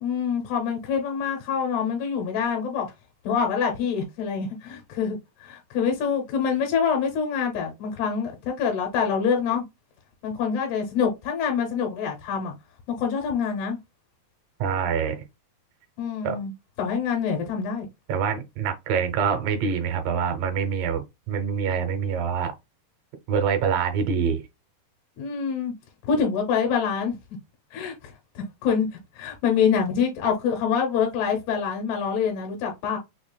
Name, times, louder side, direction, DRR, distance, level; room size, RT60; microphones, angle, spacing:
voice 1, 0.0-2.9 3.2-9.6 10.2-12.5 12.9-13.8 16.0-16.5 16.8-17.9 25.2-25.7 26.0-27.2 27.7-28.9 29.2-33.0, left 6 dB, 85° left, 3.0 m, -26 dB
voice 2, 14.6-15.2 16.2-16.4 18.1-22.5 23.3-24.4, right 7 dB, 75° right, 2.3 m, -25 dB
6.2 x 2.4 x 2.2 m
omnidirectional pair, 4.5 m